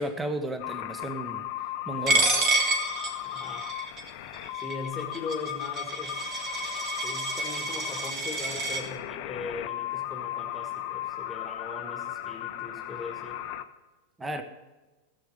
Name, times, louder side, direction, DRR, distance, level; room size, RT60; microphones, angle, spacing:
voice 1, 0.0-1.4 1.9-2.3 14.2-14.4, right 1 dB, 10° right, 8 dB, 1.1 m, -33 dB
sound 1, 0.6-13.6, left 13 dB, 45° left, 0.7 m, -36 dB
Coin (dropping), 2.1-8.8, right 2 dB, 35° right, 1.9 m, -29 dB
voice 2, 3.2-3.7 4.5-6.4 7.0-13.4, left 3 dB, 10° left, 2 dB, 1.6 m, -40 dB
16.0 x 7.4 x 5.3 m, 1.2 s
figure-of-eight pair, 90°, 0 cm